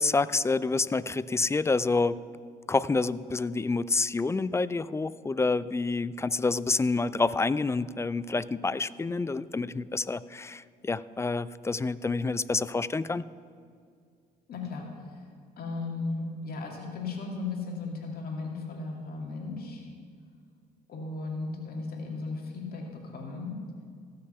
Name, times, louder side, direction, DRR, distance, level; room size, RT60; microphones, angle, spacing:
voice 1, 0.0-2.2 2.7-13.2, left 3 dB, 15° left, 17 dB, 0.3 m, -28 dB
voice 2, 14.5-14.9 15.6-19.9 20.9-23.5, left 3 dB, 55° left, 0 dB, 2.4 m, -36 dB
16.0 x 6.6 x 5.6 m, 2.2 s
supercardioid pair, 75°, 18 cm